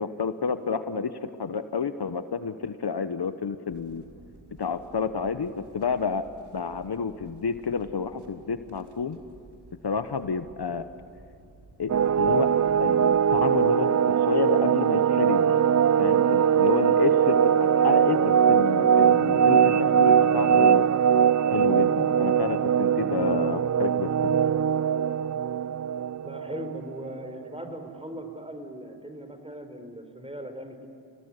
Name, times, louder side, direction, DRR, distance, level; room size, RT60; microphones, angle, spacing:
voice 1, 0.0-4.0 4.6-9.2 9.8-10.8 11.8-12.5 12.8-15.6 16.0-20.9 21.5-24.4, left 5 dB, 65° left, 10 dB, 1.2 m, -30 dB
sound 1, 3.7-13.5, right 2 dB, 65° right, 3.9 m, -53 dB
sound 2, 11.9-27.1, right 8 dB, 40° right, 0.6 m, -21 dB
voice 2, 26.2-30.9, equal, 15° right, 7 dB, 4.2 m, -39 dB
29.0 x 18.5 x 9.8 m, 2.5 s
cardioid pair, 40°, 43 cm